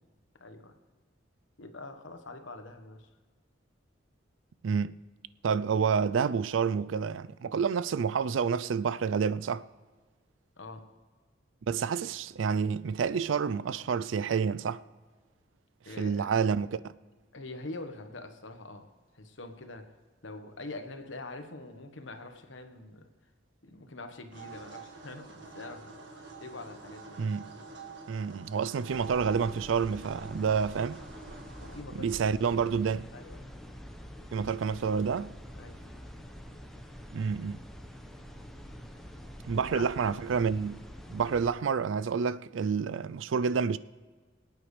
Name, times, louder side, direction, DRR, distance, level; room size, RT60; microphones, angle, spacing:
voice 1, 0.4-0.7 1.6-3.1 10.6-10.8 15.8-16.3 17.3-18.9 19.1-19.8 20.2-23.1 23.6-26.0 26.4-27.3 31.6-32.4 33.1-33.5 35.6-35.8 39.5-40.1, left 2 dB, 80° left, 1.3 m, -44 dB
voice 2, 4.6-5.0 5.4-9.6 11.7-14.8 16.0-16.9 27.2-27.4 28.1-31.0 31.9-33.1 34.3-35.3 37.1-37.6 39.4-40.8 41.1-43.8, right 6 dB, 90° right, 0.4 m, -29 dB
sound 1, 24.3-31.8, right 4 dB, 65° right, 1.8 m, -47 dB
sound 2, 28.9-41.5, equal, ahead, 1.0 m, -46 dB
24.0 x 9.0 x 3.3 m
head